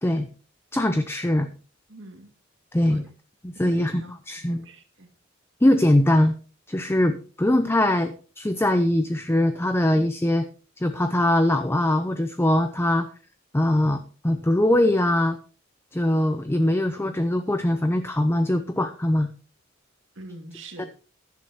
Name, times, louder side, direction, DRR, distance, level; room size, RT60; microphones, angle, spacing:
voice 1, 0.7-1.5 2.7-3.0 3.4-4.6 5.6-6.3 6.7-10.5 10.8-13.1 13.5-15.4 15.9-19.3 20.8-20.9, left 1 dB, 10° left, 8 dB, 0.6 m, -22 dB
voice 2, 1.9-2.3 2.9-3.1 3.5-5.1 20.2-20.9, right 1 dB, 65° right, 5 dB, 2.2 m, -43 dB
14.5 x 11.0 x 2.9 m, 0.38 s
head